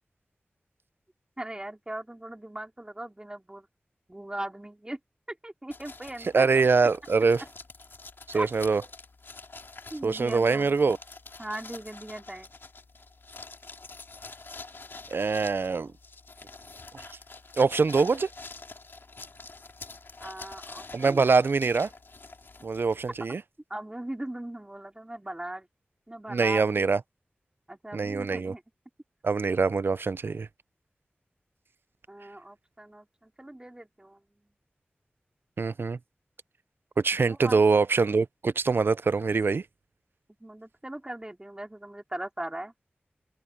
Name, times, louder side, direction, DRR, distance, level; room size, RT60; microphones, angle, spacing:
voice 1, 1.4-3.7 4.1-5.0 5.3-6.5 8.3-8.5 9.9-10.8 11.4-12.5 20.2-21.3 23.7-25.7 26.1-26.8 27.7-28.6 32.1-34.2 37.1-37.6 40.4-42.7, right 1 dB, 20° right, 3.2 m, -39 dB
sound 1, 5.7-23.2, left 3 dB, 70° left, 2.6 m, -46 dB
voice 2, 6.3-7.4 8.3-8.8 10.0-11.0 15.1-15.9 17.6-18.3 20.9-21.9 22.6-23.4 26.3-27.0 27.9-28.5 29.2-30.5 35.6-36.0 37.0-39.6, right 4 dB, 70° right, 0.4 m, -24 dB
wide cardioid pair, 55°, 4 cm